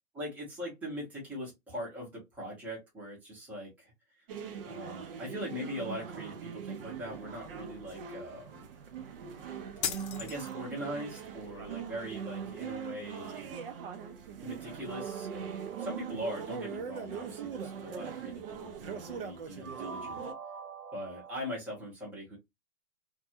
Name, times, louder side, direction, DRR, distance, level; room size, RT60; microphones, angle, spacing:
voice 1, 0.1-3.9 4.6-8.7 10.2-13.6 14.4-20.2 20.9-22.4, equal, 5° right, -5 dB, 0.7 m, -41 dB
sound 1, 4.3-20.3, right 7 dB, 40° right, 0.5 m, -41 dB
sound 2, 9.8-10.8, left 8 dB, 50° left, 0.7 m, -36 dB
sound 3, 14.9-17.8 19.6-21.5, right 6 dB, 85° right, 0.8 m, -46 dB
2.6 x 2.3 x 2.6 m, 0.20 s
hypercardioid pair, 150°, 43 cm